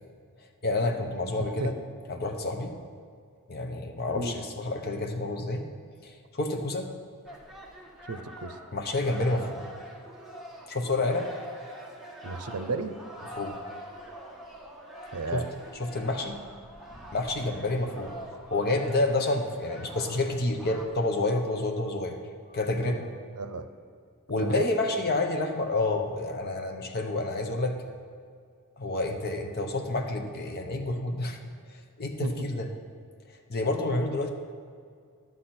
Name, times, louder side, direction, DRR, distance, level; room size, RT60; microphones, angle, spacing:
voice 1, 0.6-1.7 2.1-2.7 3.5-5.6 6.0-6.9 8.7-9.6 10.7-11.3 13.4-13.6 15.3-15.4 15.8-16.4 17.1-18.1 18.5-22.2 22.5-23.0 24.3-27.8 28.8-31.4 32.0-32.7 33.5-34.3, left 2 dB, 45° left, 4 dB, 0.9 m, -29 dB
voice 2, 1.4-1.7 4.1-4.3 8.1-8.6 12.2-12.9 15.1-15.5 23.4-23.7 24.4-24.7 32.2-32.3, right 3 dB, 80° right, 10 dB, 0.6 m, -33 dB
sound 1, 7.2-20.8, right 1 dB, ahead, 1.3 m, -44 dB
11.0 x 7.8 x 4.3 m, 2.2 s
head